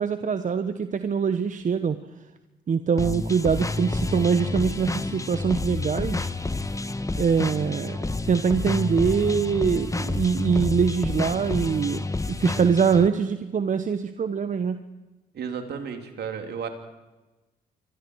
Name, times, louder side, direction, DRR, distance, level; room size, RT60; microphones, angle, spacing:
voice 1, 0.0-2.0 2.7-6.3 7.2-8.0 8.3-14.8, right 6 dB, 45° right, 10 dB, 1.1 m, -24 dB
sound 1, 3.0-13.1, left 3 dB, 15° left, 1.3 m, -29 dB
voice 2, 15.3-16.7, right 7 dB, 65° right, 5 dB, 3.3 m, -33 dB
26.5 x 23.5 x 4.8 m, 1.1 s
supercardioid pair, 60°, 19 cm